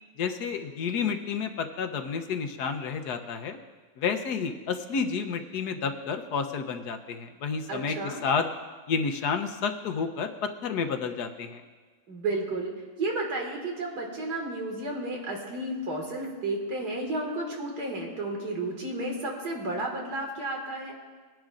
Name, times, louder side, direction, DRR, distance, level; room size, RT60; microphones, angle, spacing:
voice 1, 0.2-3.6 4.0-8.4 8.9-11.6, left 5 dB, 90° left, 6 dB, 1.4 m, -30 dB
voice 2, 7.7-8.2 12.1-12.7 13.0-20.9, right 2 dB, 90° right, 0 dB, 2.6 m, -32 dB
20.0 x 10.5 x 2.5 m, 1.4 s
omnidirectional pair, 1.7 m